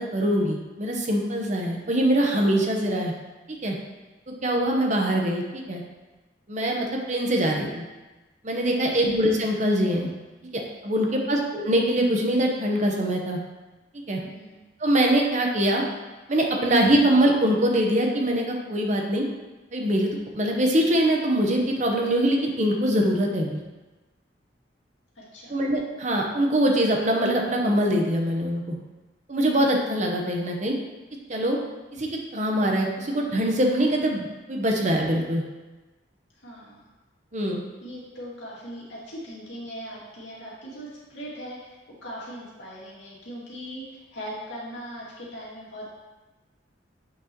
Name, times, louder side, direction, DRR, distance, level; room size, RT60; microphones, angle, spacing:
voice 1, 0.0-3.1 3.6-3.8 4.3-5.8 6.5-7.8 8.4-10.1 10.5-13.4 14.1-14.2 14.8-15.8 16.3-19.2 19.7-23.6 25.5-28.8 29.3-30.7 31.3-31.6 31.9-35.4 37.3-37.6, right 1 dB, 40° right, 1 dB, 1.0 m, -23 dB
voice 2, 11.0-11.3 14.2-14.6 25.2-25.6 36.4-36.9 37.8-41.7 42.0-45.9, equal, 75° left, -6 dB, 2.3 m, -40 dB
7.9 x 6.1 x 3.0 m, 1.1 s
head